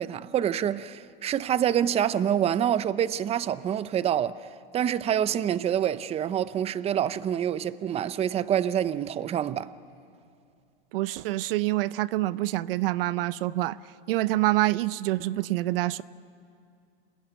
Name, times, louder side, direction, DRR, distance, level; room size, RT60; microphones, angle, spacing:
voice 1, 0.0-9.7, right 10 dB, 20° right, 0.7 m, -27 dB
voice 2, 10.9-13.8 14.1-16.0, right 17 dB, 70° right, 0.7 m, -26 dB
27.5 x 21.5 x 9.1 m
supercardioid pair, 125°, 29 cm